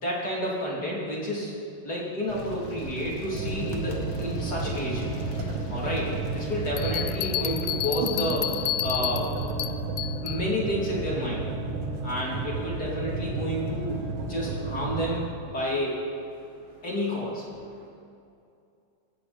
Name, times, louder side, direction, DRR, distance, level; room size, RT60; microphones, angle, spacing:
voice 1, 0.0-1.6 1.8-5.0 5.7-9.3 10.2-11.5 12.0-16.0 16.8-17.4, equal, 30° left, -4 dB, 3.4 m, -30 dB
sound 1, 2.3-7.5, left 2 dB, 55° left, 2.4 m, -39 dB
sound 2, 3.3-15.2, right 3 dB, 75° right, 3.1 m, -32 dB
sound 3, 6.8-10.4, left 14 dB, 90° left, 1.6 m, -31 dB
voice 2, 13.8-14.3 16.3-16.9 17.5-17.9, equal, 45° right, -3 dB, 1.9 m, -56 dB
19.5 x 17.0 x 4.4 m, 2.5 s
omnidirectional pair, 3.7 m